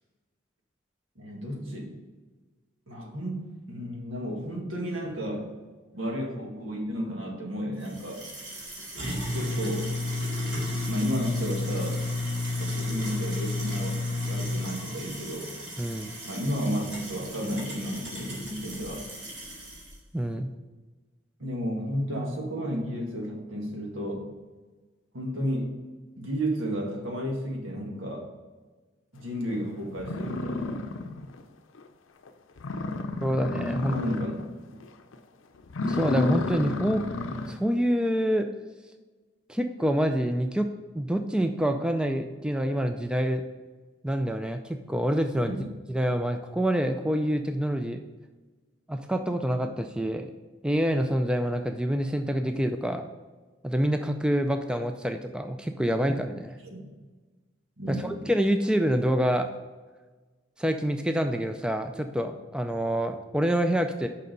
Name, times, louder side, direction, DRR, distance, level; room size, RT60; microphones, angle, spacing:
voice 1, 1.2-2.0 2.9-5.5 5.9-8.3 9.3-10.0 10.9-12.0 12.6-15.6 16.3-19.1 21.4-24.3 25.1-25.8 26.2-28.3 29.1-30.8 33.9-34.4 45.5-45.6 56.6-56.9 57.8-58.1, equal, 90° right, 0 dB, 1.8 m, -32 dB
sound 1, 7.9-19.9, left 2 dB, 65° right, 2.5 m, -33 dB
voice 2, 15.8-16.1 20.1-20.5 33.2-34.0 35.9-37.0 37.5-38.5 39.5-40.7 40.9-43.4 44.0-45.6 45.9-48.0 48.9-50.3 50.6-53.1 53.6-56.6 57.9-59.5 60.6-64.1, equal, 5° right, 6 dB, 0.3 m, -26 dB
sound 2, 29.5-29.6 30.0-31.4 31.8-31.9 32.3-32.4 32.6-34.5 34.8-35.1 35.6-37.7, left 3 dB, 85° left, 0.6 m, -31 dB
6.7 x 5.5 x 5.2 m, 1.3 s
head